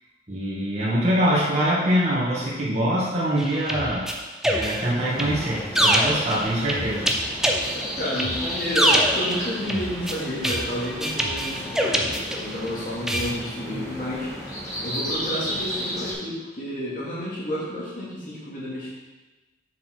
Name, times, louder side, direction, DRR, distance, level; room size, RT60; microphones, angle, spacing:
voice 1, 0.3-4.1 4.5-7.1, equal, 35° right, -7 dB, 2.0 m, -24 dB
sound 1, 3.4-12.7 13.1-13.3, equal, 5° right, 0.6 m, -25 dB
sound 2, 5.0-16.1, equal, 20° left, 2.5 m, -34 dB
voice 2, 8.0-14.3 14.8-18.9, left 1 dB, 45° left, -8 dB, 2.7 m, -30 dB
7.0 x 6.3 x 4.7 m, 1.2 s
head